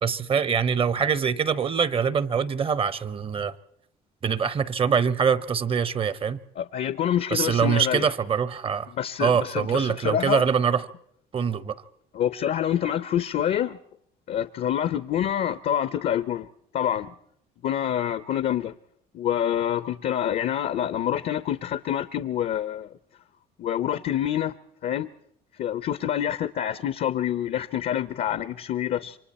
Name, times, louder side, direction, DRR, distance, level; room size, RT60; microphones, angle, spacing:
voice 1, 0.0-3.5 4.2-6.4 7.3-8.9 9.2-10.9 11.3-11.8, right 7 dB, 35° right, 0.9 m, -24 dB
voice 2, 6.6-8.1 8.9-10.4 12.1-13.8 14.3-16.5 16.7-17.1 17.6-18.7 19.1-22.9 23.6-24.5 24.8-25.1 25.6-29.2, left 10 dB, 60° left, 0.7 m, -27 dB
28.0 x 24.0 x 4.3 m
cardioid pair, 110°, 17 cm